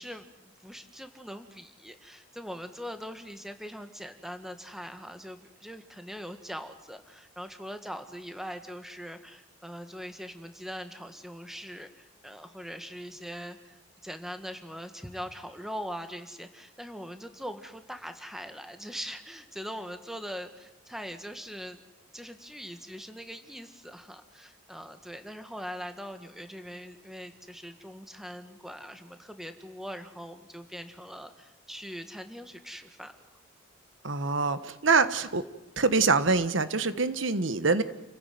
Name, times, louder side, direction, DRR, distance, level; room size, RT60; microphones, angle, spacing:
voice 1, 0.0-21.8 22.1-33.3, equal, ahead, 8 dB, 1.7 m, -42 dB
voice 2, 34.0-35.4 35.8-37.8, right 4 dB, 70° right, 12 dB, 1.3 m, -25 dB
29.5 x 15.5 x 9.4 m, 1.0 s
head